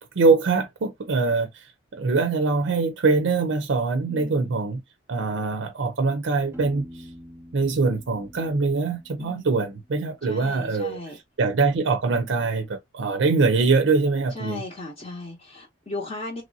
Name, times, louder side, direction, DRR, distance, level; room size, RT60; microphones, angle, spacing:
voice 1, 0.2-1.6 1.9-4.8 5.1-6.9 7.5-11.0 11.4-14.6, right 4 dB, 80° right, 0.5 m, -23 dB
voice 2, 4.1-4.5 9.2-9.4 10.2-11.2 14.3-16.4, left 2 dB, 35° left, 0.7 m, -36 dB
Piano, 6.5-10.2, equal, 10° right, 0.5 m, -46 dB
3.0 x 2.6 x 2.6 m
head